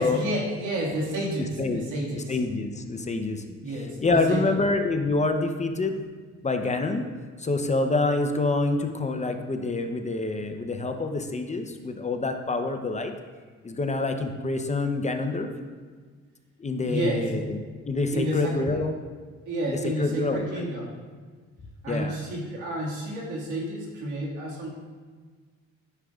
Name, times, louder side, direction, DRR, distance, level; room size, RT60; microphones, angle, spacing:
voice 1, 0.0-2.4 3.6-4.6 16.8-17.3 18.1-18.7 19.5-20.9 21.8-24.7, right 1 dB, 85° right, -3 dB, 1.9 m, -30 dB
voice 2, 2.3-3.6 4.0-6.0 6.4-7.0 7.4-13.1 13.6-15.5 16.6-17.6 17.9-19.0 19.7-20.7 21.9-22.2, left 3 dB, 25° left, 6 dB, 0.6 m, -27 dB
9.9 x 6.2 x 2.3 m, 1.5 s
cardioid pair, 90°, 30 cm